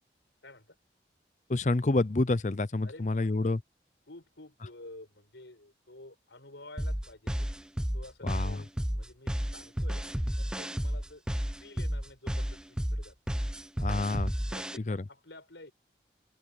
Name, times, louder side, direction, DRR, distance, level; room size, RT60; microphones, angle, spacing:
voice 1, 0.4-0.8 2.8-3.6 4.1-7.5 7.9-10.0 10.4-11.2 11.5-13.4 13.9-15.7, left 2 dB, 85° left, 6.2 m, -51 dB
voice 2, 1.5-3.6 8.2-8.6 13.8-14.3 14.9-15.0, left 2 dB, 40° left, 0.6 m, -28 dB
sound 1, 6.8-14.8, equal, 5° right, 0.6 m, -32 dB
open air
head